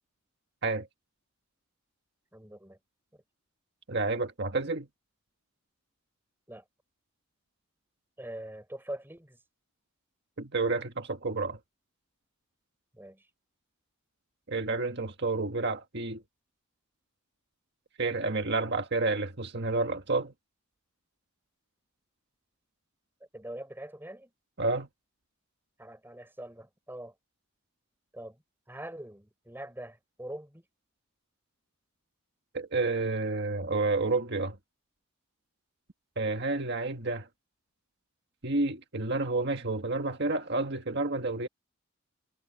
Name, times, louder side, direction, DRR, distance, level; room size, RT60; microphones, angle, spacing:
voice 1, 2.3-2.8 6.5-6.6 8.2-9.4 12.9-13.2 23.3-24.3 25.8-27.1 28.1-28.4 28.7-30.6, right 1 dB, 10° right, 5.9 m, -43 dB
voice 2, 3.9-4.9 10.4-11.6 14.5-16.2 18.0-20.3 24.6-24.9 32.5-34.6 36.2-37.3 38.4-41.5, right 3 dB, 55° right, 1.7 m, -30 dB
head